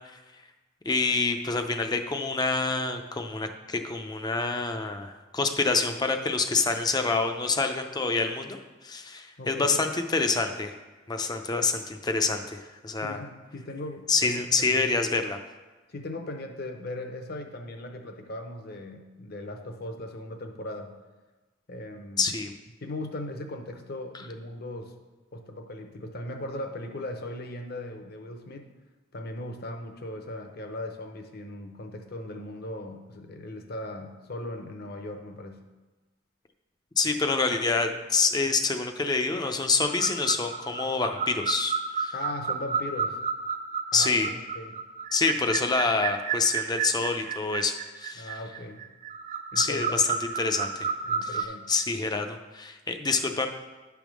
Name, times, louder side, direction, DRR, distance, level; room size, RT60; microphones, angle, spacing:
voice 1, 0.9-8.6 8.8-10.7 11.1-12.6 12.8-13.2 14.1-15.4 22.2-22.5 37.0-42.1 43.9-44.3 45.1-48.3 49.6-50.0 50.4-50.9 51.2-53.5, left 4 dB, 20° left, 6 dB, 0.5 m, -27 dB
voice 2, 9.4-9.7 13.0-14.9 15.9-20.9 21.7-22.3 22.8-24.9 25.3-28.7 29.1-35.6 42.1-43.2 43.9-44.7 48.2-48.8 49.5-50.0 51.0-51.7, left 1 dB, 50° left, 4 dB, 0.8 m, -38 dB
sound 1, 39.8-51.4, right 6 dB, 35° right, 0.3 m, -32 dB
9.7 x 3.5 x 6.1 m, 1.2 s
head